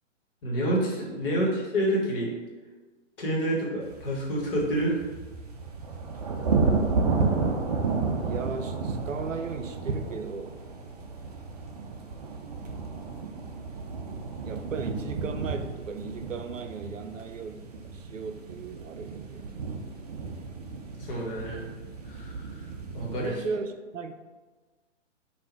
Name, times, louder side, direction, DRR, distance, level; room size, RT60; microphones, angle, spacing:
voice 1, 0.4-2.3 3.2-5.0 21.0-21.6 22.0-22.7 22.9-23.3, right 1 dB, 45° left, -3 dB, 1.4 m, -28 dB
sound 1, 3.8-23.3, right 4 dB, 35° right, 0.4 m, -32 dB
voice 2, 8.2-10.6 14.4-19.5 23.1-24.1, right 5 dB, 85° right, 8 dB, 0.6 m, -36 dB
3.7 x 2.6 x 4.4 m, 1.3 s
figure-of-eight pair, 130°, 38 cm